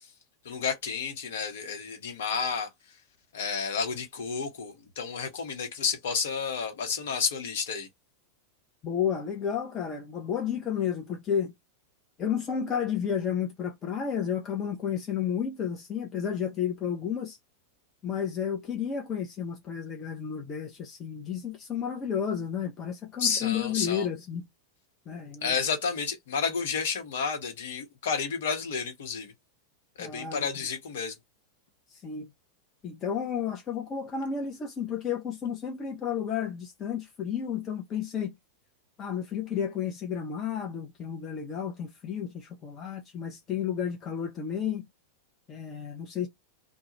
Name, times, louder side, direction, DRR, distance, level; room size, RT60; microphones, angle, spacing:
voice 1, 0.4-2.7 3.3-7.9 23.2-24.1 25.4-29.3 30.0-31.1, left 6 dB, 60° left, 1.0 m, -31 dB
voice 2, 8.8-11.5 12.2-17.4 18.0-24.4 25.1-25.5 30.0-30.5 31.9-32.3 32.8-38.3 39.0-44.9 45.5-46.3, left 8 dB, 25° left, 0.7 m, -32 dB
2.3 x 2.2 x 3.0 m
figure-of-eight pair, 90°, 0 cm